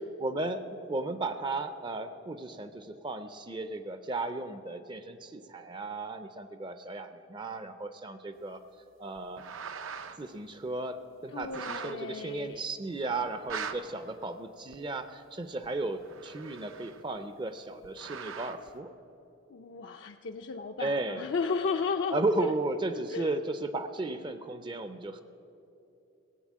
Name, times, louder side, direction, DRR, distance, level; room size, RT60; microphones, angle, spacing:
voice 1, 0.2-8.6 9.0-9.4 10.2-18.9 20.8-21.3 22.1-25.2, right 2 dB, 25° right, 11 dB, 0.4 m, -35 dB
sound 1, 9.2-10.2 10.7-10.8 11.4-12.0 12.5-12.6 13.3-13.8 14.7-14.8 15.6-17.2 17.8-18.7, right 6 dB, 90° right, 0.7 m, -41 dB
voice 2, 11.3-12.7 19.5-22.5 23.1-23.3, left 4 dB, 65° left, 4 dB, 0.5 m, -34 dB
16.5 x 7.9 x 7.3 m, 2.9 s
head